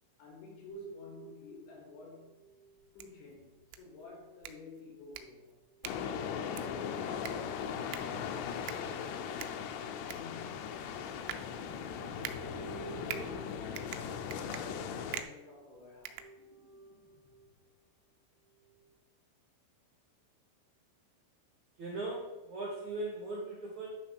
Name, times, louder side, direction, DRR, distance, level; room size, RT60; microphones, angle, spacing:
voice 1, 0.2-2.4 2.9-5.6 6.1-12.2 12.8-16.2, left 3 dB, 70° left, -2 dB, 4.4 m, -51 dB
sound 1, 0.7-3.9 5.6-10.7 11.1-15.5 15.9-17.7 18.5-18.9, right 4 dB, 40° left, 2.9 m, -54 dB
sound 2, 2.8-16.9, right 11 dB, 85° right, 3.2 m, -47 dB
sound 3, 5.8-15.2, left 7 dB, 90° left, 2.4 m, -39 dB
voice 2, 21.8-23.9, right 2 dB, 70° right, -3 dB, 1.8 m, -39 dB
10.5 x 3.7 x 6.5 m, 1.0 s
omnidirectional pair, 5.7 m